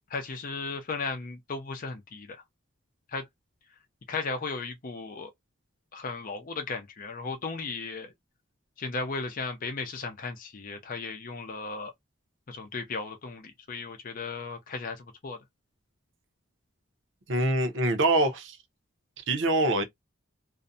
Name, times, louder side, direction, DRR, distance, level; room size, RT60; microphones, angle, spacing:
voice 1, 0.1-2.4 3.1-3.3 4.1-5.3 5.9-8.1 8.8-11.9 12.5-15.4, left 4 dB, 45° left, 0.5 m, -35 dB
voice 2, 17.3-18.6 19.3-19.8, right 2 dB, 65° right, 0.7 m, -24 dB
2.5 x 2.1 x 2.6 m
head